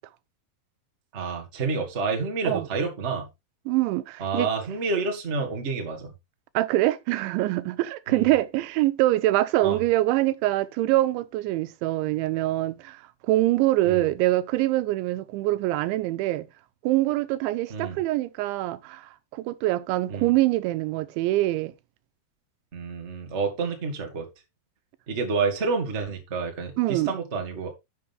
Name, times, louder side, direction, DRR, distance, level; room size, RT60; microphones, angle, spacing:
voice 1, 1.1-3.3 4.2-6.1 8.1-8.3 9.6-9.8 13.8-14.0 17.7-18.0 20.1-20.3 22.7-24.3 25.1-27.7, right 4 dB, 30° right, 1.3 m, -29 dB
voice 2, 3.7-4.5 6.5-16.5 16.8-21.7 26.8-27.2, right 16 dB, 90° right, 3.2 m, -24 dB
11.5 x 7.1 x 3.6 m
omnidirectional pair, 5.2 m